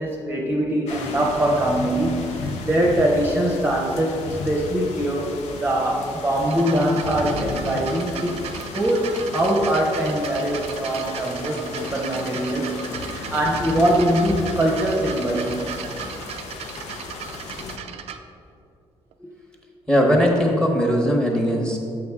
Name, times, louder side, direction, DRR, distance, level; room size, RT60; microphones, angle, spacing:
voice 1, 0.0-8.5 8.7-15.6 19.2-19.3, right 1 dB, 15° right, -2 dB, 0.7 m, -23 dB
sound 1, 0.9-17.8, left 3 dB, 80° left, 0.7 m, -34 dB
sound 2, 6.5-18.2 19.1-19.2, right 8 dB, 65° right, 0.4 m, -36 dB
voice 2, 19.9-21.8, equal, 5° left, 1 dB, 1.0 m, -19 dB
6.7 x 5.4 x 3.5 m, 2.5 s
cardioid pair, 120°, 11 cm